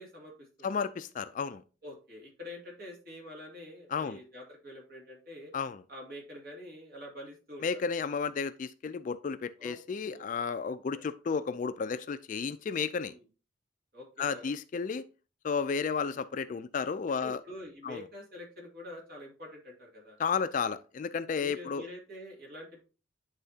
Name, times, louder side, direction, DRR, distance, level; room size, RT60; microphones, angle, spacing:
voice 1, 0.0-0.8 1.8-5.5 5.9-7.8 9.6-9.7 10.1-10.5 10.9-11.0 12.9-13.2 13.9-14.5 16.1-16.2 17.2-20.2 21.4-22.8, left 1 dB, 50° right, 2.2 m, -46 dB
voice 2, 0.6-1.6 3.9-4.2 5.5-5.8 7.6-13.1 14.2-15.0 15.4-17.4 17.8-18.0 20.2-21.9, left 5 dB, 40° left, 0.3 m, -32 dB
9.9 x 3.7 x 2.7 m
head